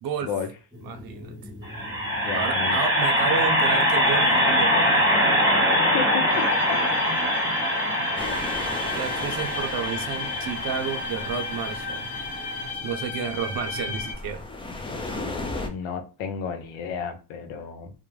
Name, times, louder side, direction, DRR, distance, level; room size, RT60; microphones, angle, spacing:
sound 1, 0.7-12.6, equal, 10° right, 0.9 m, -24 dB
voice 1, 0.8-1.4 2.3-4.9 8.9-12.1 12.8-14.4, right 7 dB, 50° right, 6 dB, 0.6 m, -31 dB
voice 2, 2.2-2.8 5.7-6.4 6.7-6.8 15.6-17.9, left 6 dB, 75° left, 6 dB, 0.7 m, -32 dB
sound 2, 6.3-14.1, left 4 dB, 50° left, 1.1 m, -34 dB
sound 3, 8.2-15.7, left 2 dB, 10° left, 0.4 m, -37 dB
2.3 x 2.1 x 3.0 m, 0.32 s
supercardioid pair, 85°, 48 cm